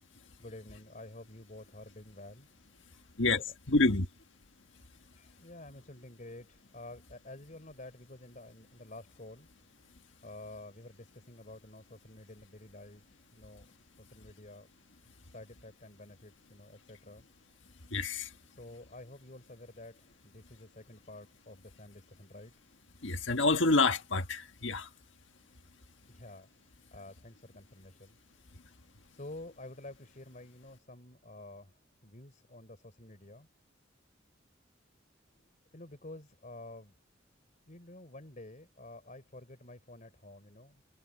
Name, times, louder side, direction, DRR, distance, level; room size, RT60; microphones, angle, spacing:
voice 1, 0.4-2.5 2.8-2.9 5.1-9.5 10.2-13.7 14.0-14.7 15.3-17.2 18.5-22.5 26.1-28.2 29.1-33.5 35.3-36.9 37.7-40.8, left 2 dB, 40° left, 3.9 m, -50 dB
voice 2, 3.7-4.0 17.9-18.3 23.0-24.9, left 3 dB, 75° left, 1.6 m, -27 dB
head